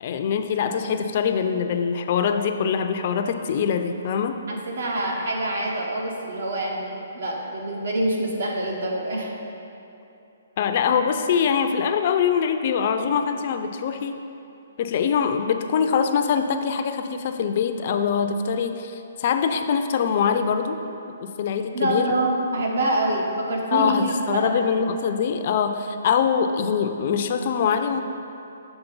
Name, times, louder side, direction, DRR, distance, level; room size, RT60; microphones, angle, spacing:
voice 1, 0.0-4.4 10.6-14.2 14.8-20.8 21.1-22.2 23.7-28.0, left 7 dB, 40° left, 7 dB, 0.3 m, -23 dB
voice 2, 4.5-9.3 21.7-24.5, right 1 dB, 70° right, -1 dB, 1.2 m, -26 dB
7.0 x 3.8 x 5.4 m, 2.7 s
hypercardioid pair, 165°, 0 cm